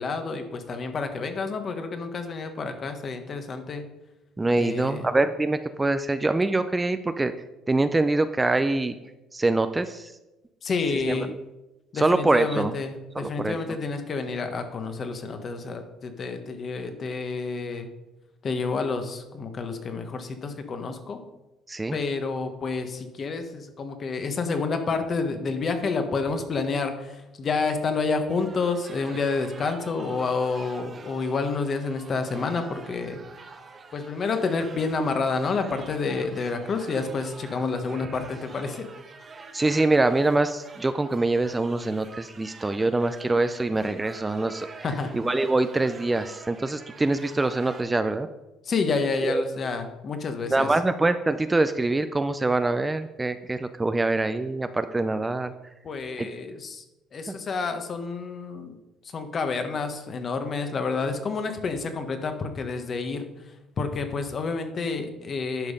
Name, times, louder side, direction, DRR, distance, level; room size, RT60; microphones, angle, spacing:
voice 1, 0.0-3.8 4.6-5.1 10.6-11.3 11.9-17.9 18.4-21.2 21.9-33.2 33.9-38.9 44.8-45.1 48.6-50.7 55.8-56.8 57.1-58.8 59.1-63.3 63.8-65.7, left 4 dB, 40° left, 7 dB, 1.3 m, -29 dB
voice 2, 4.4-7.3 7.7-8.9 9.3-10.1 11.1-11.4 11.9-12.7 13.2-13.8 21.7-22.0 39.5-44.8 45.1-48.3 49.2-49.6 50.5-55.5 56.2-56.3, right 2 dB, 15° right, 10 dB, 0.4 m, -24 dB
sound 1, 28.3-47.8, right 4 dB, 30° right, 1.1 m, -46 dB
10.5 x 5.5 x 5.3 m, 1.0 s
cardioid pair, 110°, 0 cm